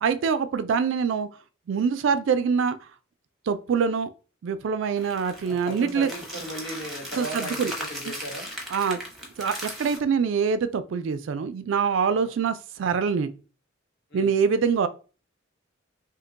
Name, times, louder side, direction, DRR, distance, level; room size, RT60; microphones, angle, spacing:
voice 1, 0.0-1.3 1.7-2.8 3.5-4.1 4.4-6.1 7.2-7.7 8.7-9.0 9.4-13.3 14.1-14.9, right 6 dB, 60° right, 0.3 m, -24 dB
sound 1, 5.0-10.0, equal, ahead, 0.7 m, -37 dB
voice 2, 5.4-8.5 12.2-12.4 14.1-14.3, equal, 50° left, 1.0 m, -37 dB
2.7 x 2.2 x 3.8 m
head